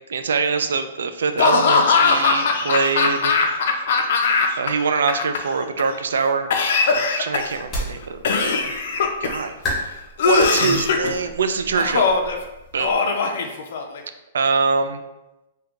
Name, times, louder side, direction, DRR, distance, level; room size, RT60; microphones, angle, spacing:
voice 1, 0.1-3.3 4.6-6.5 7.0-8.7 9.2-9.6 10.2-12.1 12.7-13.0 14.3-15.0, right 5 dB, 90° right, 9 dB, 0.3 m, -23 dB
Laughter / Cough, 1.4-4.7 5.0-5.8 6.5-7.6 8.2-9.4 10.2-11.1 11.8-12.4 12.8-14.0, left 5 dB, 50° left, 0.3 m, -20 dB
sound 1, 7.3-13.0, equal, 10° left, 0.7 m, -34 dB
2.7 x 2.3 x 3.7 m, 0.98 s
hypercardioid pair, 175°, 0 cm